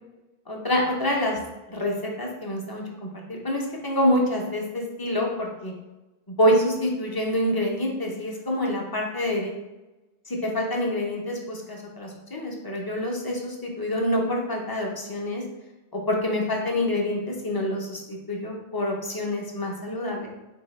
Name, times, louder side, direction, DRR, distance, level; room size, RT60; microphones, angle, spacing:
voice 1, 0.5-1.4 1.7-2.8 3.3-5.7 6.4-9.5 10.3-15.4 16.1-20.3, left 1 dB, 30° left, -1 dB, 0.5 m, -26 dB
4.1 x 2.7 x 3.1 m, 1.1 s
omnidirectional pair, 1.1 m